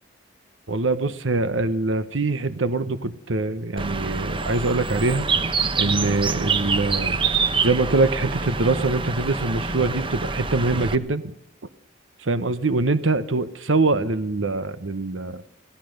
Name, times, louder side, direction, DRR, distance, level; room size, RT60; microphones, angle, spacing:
voice 1, 0.7-7.2 7.6-11.3 12.2-15.4, right 3 dB, 85° right, 12 dB, 1.0 m, -24 dB
Bird, 3.8-11.0, right 4 dB, 25° right, 1.0 m, -26 dB
25.0 x 17.5 x 6.6 m, 0.66 s
head